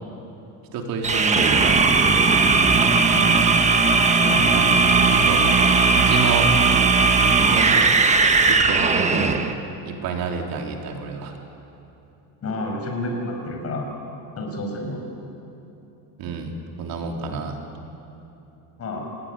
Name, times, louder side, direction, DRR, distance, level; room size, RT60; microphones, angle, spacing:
voice 1, 0.7-2.3 4.5-4.6 4.9-5.4 5.9-6.6 7.5-8.0 8.5-9.4 9.8-11.3 16.2-17.6, right 4 dB, 50° right, 2 dB, 3.6 m, -29 dB
sound 1, 1.0-9.5, right 4 dB, 15° right, 1.1 m, -17 dB
voice 2, 3.1-3.4 4.1-4.6 9.1-9.3 12.4-13.9 14.4-15.0 18.8-19.1, left 1 dB, 30° left, 2 dB, 6.0 m, -30 dB
28.0 x 20.0 x 9.8 m, 2.9 s
cardioid pair, 165°, 45 cm